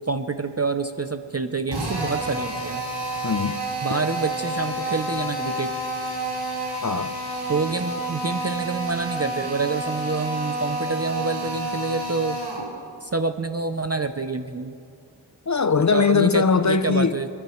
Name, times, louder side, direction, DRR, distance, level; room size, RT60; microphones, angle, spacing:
voice 1, 0.1-2.8 3.8-5.7 7.5-12.4 13.0-14.7 15.9-17.3, right 4 dB, 30° right, 0.6 m, -27 dB
Drill, 1.7-12.7, right 1 dB, 75° right, 4.3 m, -29 dB
voice 2, 3.2-3.6 6.8-7.1 15.5-17.2, left 5 dB, 40° left, 0.5 m, -20 dB
27.5 x 12.0 x 3.1 m
wide cardioid pair, 50°, 49 cm